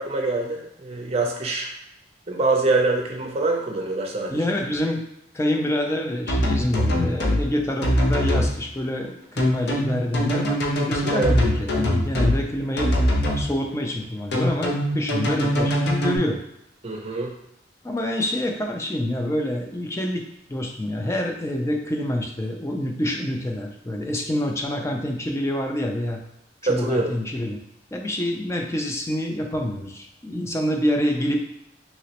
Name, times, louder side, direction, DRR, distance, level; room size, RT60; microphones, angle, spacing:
voice 1, 0.0-1.7 2.3-4.4 11.0-11.3 16.8-17.3 26.7-27.1, right 3 dB, 35° right, 0 dB, 0.5 m, -24 dB
voice 2, 4.3-5.0 5.3-12.9 13.4-16.4 17.8-20.2 20.5-26.2 26.6-27.6 27.9-31.4, left 1 dB, 15° left, 2 dB, 0.4 m, -26 dB
sound 1, 6.3-7.4 7.8-8.5 9.4-12.4 12.8-13.4 14.3-16.2, equal, 60° left, 0.6 m, -22 dB
3.0 x 2.9 x 2.9 m, 0.80 s
head